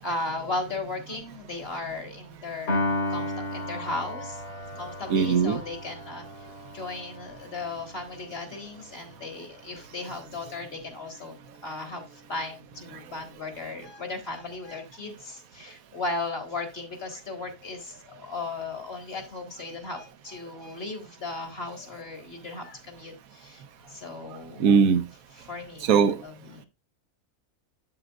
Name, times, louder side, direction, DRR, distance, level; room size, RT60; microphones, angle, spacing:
voice 1, 0.0-4.4 4.8-6.2 6.7-11.3 11.6-24.6 25.5-26.6, left 3 dB, 45° left, 1.8 m, -36 dB
Piano, 2.7-9.1, left 1 dB, 75° left, 3.7 m, -34 dB
voice 2, 5.1-5.6 24.6-25.0 25.8-26.2, right 6 dB, 70° right, 1.2 m, -20 dB
7.7 x 7.7 x 2.4 m
omnidirectional pair, 1.5 m